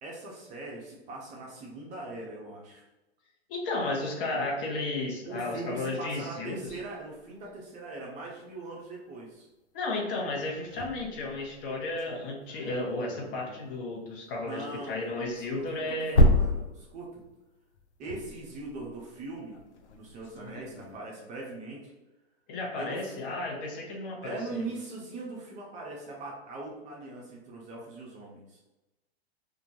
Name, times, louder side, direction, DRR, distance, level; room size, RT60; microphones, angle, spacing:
voice 1, 0.0-2.8 5.2-9.5 14.5-15.3 15.7-17.2 18.0-19.6 19.9-21.9 22.8-23.2 24.2-28.6, right 2 dB, 25° right, -2 dB, 0.4 m, -41 dB
voice 2, 3.5-6.6 9.7-16.2 22.5-24.6, left 2 dB, 55° left, 0 dB, 0.7 m, -33 dB
sound 1, 6.6-7.6 10.3-14.0 15.1-21.0, left 1 dB, 90° left, 0.5 m, -31 dB
2.2 x 2.0 x 2.7 m, 1.0 s
hypercardioid pair, 105°, 33 cm